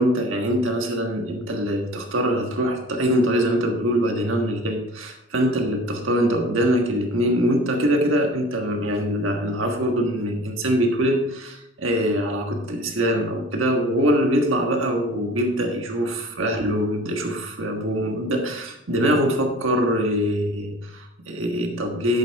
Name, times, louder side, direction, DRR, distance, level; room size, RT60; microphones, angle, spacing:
voice 1, 0.0-22.2, equal, 70° right, 2 dB, 1.5 m, -23 dB
11.5 x 8.4 x 3.5 m, 0.83 s
head